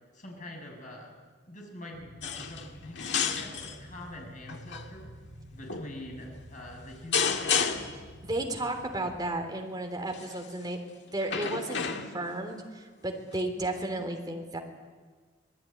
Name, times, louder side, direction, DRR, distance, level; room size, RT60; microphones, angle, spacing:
voice 1, 0.1-1.2 1.5-5.1 5.5-7.8, left 1 dB, 40° left, 1 dB, 7.0 m, -45 dB
sound 1, 1.9-9.2, equal, 45° right, 6.6 m, -50 dB
sound 2, 2.2-2.7 3.0-3.8 4.5-4.9 5.7-5.9 7.1-8.0 10.1-10.5 11.2-12.3 13.4-13.5, left 6 dB, 65° left, 1.9 m, -30 dB
voice 2, 8.3-10.8 11.1-14.6, right 1 dB, 20° right, 3 dB, 3.5 m, -33 dB
26.0 x 19.5 x 9.9 m, 1.5 s
head